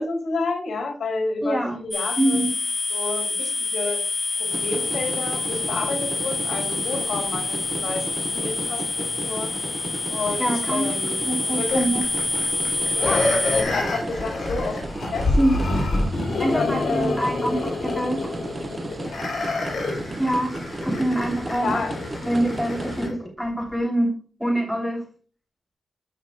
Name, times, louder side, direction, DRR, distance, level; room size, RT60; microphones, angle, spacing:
voice 1, 0.0-2.4 2.9-4.0 4.4-9.5 10.1-11.2 11.4-11.8 12.9-15.3 16.4-17.7 21.5-21.9, left 3 dB, 85° left, 4 dB, 2.4 m, -30 dB
voice 2, 1.4-1.8 2.2-2.5 10.4-10.9 11.2-12.0 15.4-15.6 16.4-18.3 20.2-20.5 20.8-21.8 22.2-24.1 24.4-25.0, right 1 dB, 5° right, 0 dB, 2.9 m, -24 dB
sound 1, 1.9-13.6, left 3 dB, 35° left, 1.9 m, -27 dB
sound 2, 4.5-23.1, right 2 dB, 35° right, 1.2 m, -35 dB
sound 3, 11.7-23.1 23.6-23.7, left 2 dB, 70° left, 4.5 m, -27 dB
12.5 x 5.7 x 2.2 m, 0.37 s
wide cardioid pair, 125°, 0 cm